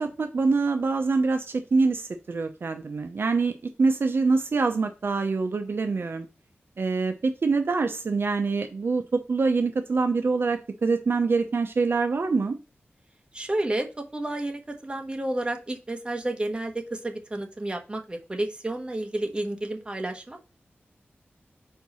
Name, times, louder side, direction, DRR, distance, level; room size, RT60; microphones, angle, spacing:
voice 1, 0.0-3.5 3.8-6.3 6.8-12.5, right 4 dB, 65° right, 6 dB, 0.7 m, -25 dB
voice 2, 13.3-13.9 14.1-20.5, right 1 dB, 25° right, 4 dB, 1.2 m, -31 dB
4.7 x 4.6 x 5.4 m, 0.32 s
wide cardioid pair, 90°, 4 cm